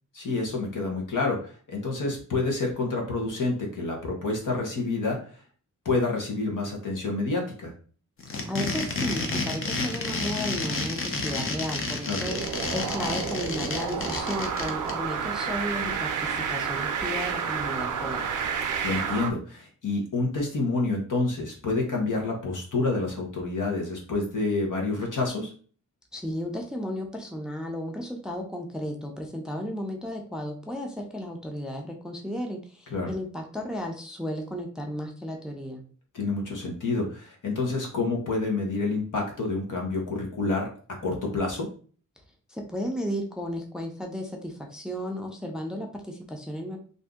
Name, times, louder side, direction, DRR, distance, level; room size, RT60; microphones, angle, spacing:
voice 1, 0.1-5.4 5.8-7.7 12.1-12.2 18.8-25.5 32.9-33.1 36.1-41.7, left 3 dB, 80° left, 1 dB, 1.0 m, -28 dB
sound 1, 8.2-14.9, left 3 dB, 45° left, 0.6 m, -30 dB
voice 2, 8.4-12.4 12.7-18.3 26.1-35.8 42.5-46.8, equal, ahead, 2 dB, 0.4 m, -34 dB
sound 2, 12.2-19.3, right 6 dB, 80° right, 0.5 m, -30 dB
2.6 x 2.6 x 3.5 m, 0.42 s
wide cardioid pair, 160°, 31 cm